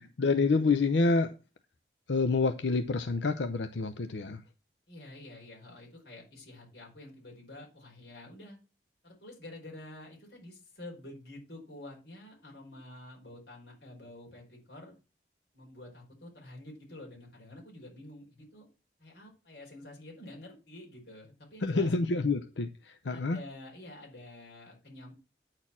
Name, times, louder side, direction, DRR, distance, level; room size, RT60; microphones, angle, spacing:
voice 1, 0.0-1.3 2.1-4.4 21.6-23.4, left 3 dB, 80° left, 0.6 m, -28 dB
voice 2, 4.9-8.6 9.0-14.9 15.5-18.7 19.0-21.9 23.1-25.1, left 1 dB, 65° left, 4.9 m, -48 dB
9.6 x 4.4 x 7.2 m
head